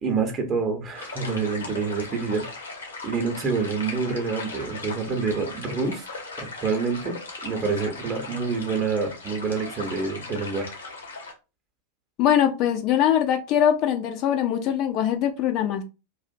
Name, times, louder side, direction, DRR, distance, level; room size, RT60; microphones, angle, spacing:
voice 1, 0.0-2.4 3.0-7.2 7.4-10.7, right 4 dB, 25° right, 0.7 m, -27 dB
sound 1, 0.9-11.3, left 3 dB, 70° left, 0.7 m, -38 dB
voice 2, 12.2-15.8, left 10 dB, 40° left, 0.3 m, -22 dB
2.4 x 2.1 x 2.5 m
figure-of-eight pair, 90°, 0 cm